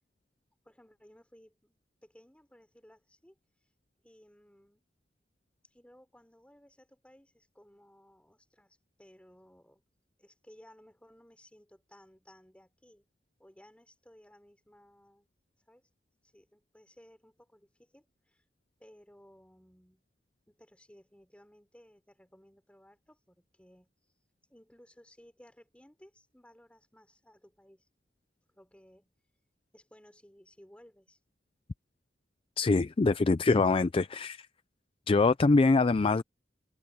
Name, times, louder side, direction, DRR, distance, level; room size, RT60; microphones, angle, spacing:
voice 1, 0.6-3.4 4.0-4.8 5.6-9.8 10.2-13.0 13.4-15.3 15.7-15.9 16.2-18.4 18.8-20.1 20.5-23.9 24.5-27.9 28.5-29.1 29.7-31.2, equal, 5° left, 3.8 m, -59 dB
voice 2, 32.6-34.5 35.1-36.2, left 3 dB, 30° left, 0.4 m, -24 dB
head